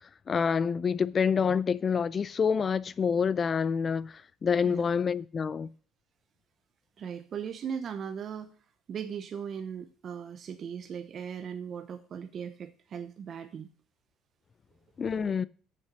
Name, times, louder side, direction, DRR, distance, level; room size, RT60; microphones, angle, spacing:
voice 1, 0.3-5.7 15.0-15.4, left 6 dB, 35° left, 0.4 m, -27 dB
voice 2, 7.0-8.5 8.9-13.7, right 7 dB, 45° right, 0.7 m, -38 dB
6.9 x 5.6 x 6.7 m
cardioid pair, 110°, 0 cm